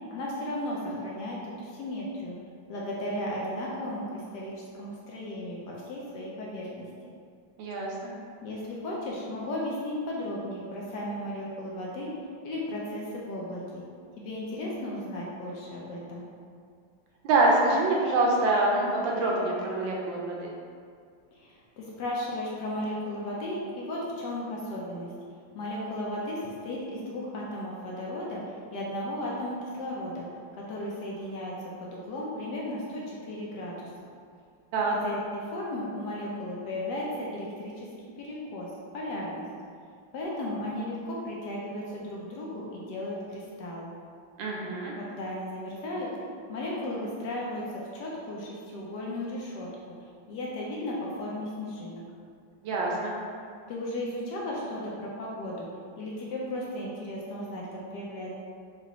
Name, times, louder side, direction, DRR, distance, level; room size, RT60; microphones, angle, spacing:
voice 1, 0.1-2.4 2.7-6.8 8.4-12.1 12.4-13.8 14.2-16.2 21.3-25.1 25.5-30.3 30.7-31.5 31.8-34.1 34.9-37.9 38.2-38.7 38.9-39.4 40.1-43.9 45.0-46.1 46.5-49.9 50.3-52.0 53.7-55.7 56.0-58.3, left 1 dB, 70° left, -4 dB, 1.1 m, -35 dB
voice 2, 7.6-8.1 17.2-20.5 34.7-34.9 44.4-44.9 52.6-53.1, right 2 dB, 80° right, -2 dB, 1.4 m, -25 dB
4.8 x 2.5 x 3.0 m, 2.2 s
omnidirectional pair, 2.1 m